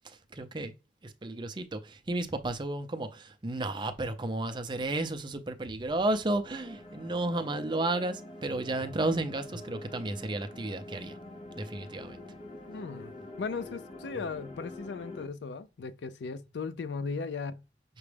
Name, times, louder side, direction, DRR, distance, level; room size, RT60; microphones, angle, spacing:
voice 1, 0.3-0.7 1.0-11.2 11.6-12.2, right 2 dB, 25° right, 0.5 m, -32 dB
sound 1, 6.4-15.3, left 1 dB, 35° left, 0.5 m, -46 dB
voice 2, 12.7-13.1 13.4-17.6, left 4 dB, 80° left, 0.4 m, -37 dB
6.0 x 2.2 x 3.3 m
head